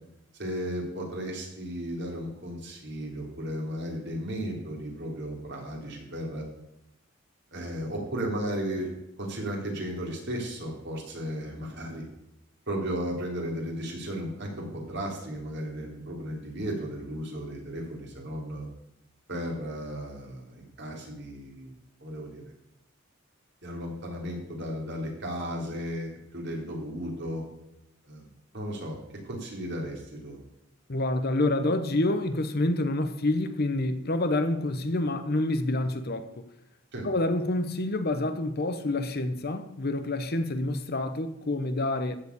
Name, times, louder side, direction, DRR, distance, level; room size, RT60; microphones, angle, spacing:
voice 1, 0.3-6.4 7.5-8.9 9.2-12.0 12.7-18.7 19.3-21.7 22.0-22.4 23.6-27.4 28.0-29.0 29.2-30.4 36.9-37.1, equal, 55° right, -1 dB, 3.5 m, -35 dB
voice 2, 30.9-36.4 37.0-42.2, left 2 dB, 50° left, 10 dB, 0.9 m, -27 dB
15.0 x 4.9 x 8.3 m, 0.83 s
head